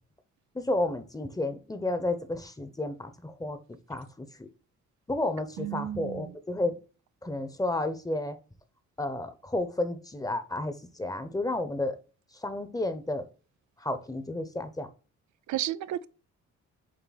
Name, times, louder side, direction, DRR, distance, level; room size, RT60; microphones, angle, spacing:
voice 1, 0.5-3.6 3.9-4.5 5.1-6.7 7.2-8.4 9.0-12.0 12.3-13.2 13.8-14.9, left 2 dB, 10° left, 1.1 m, -31 dB
voice 2, 5.6-6.4 15.5-16.1, right 13 dB, 70° right, 0.5 m, -33 dB
7.6 x 4.0 x 4.2 m
cardioid pair, 90°, 30 cm